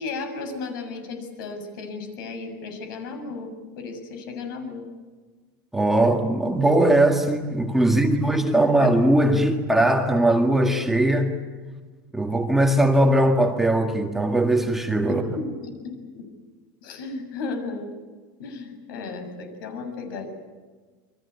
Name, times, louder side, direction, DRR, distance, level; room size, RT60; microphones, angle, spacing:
voice 1, 0.0-4.9 7.8-8.2 8.5-8.9 15.1-16.3 16.8-17.9 18.4-20.3, left 3 dB, 75° left, 6 dB, 7.0 m, -34 dB
voice 2, 5.7-11.3 12.1-15.2, right 1 dB, 5° right, 2 dB, 1.9 m, -20 dB
28.0 x 23.5 x 8.3 m, 1.4 s
supercardioid pair, 160°, 11 cm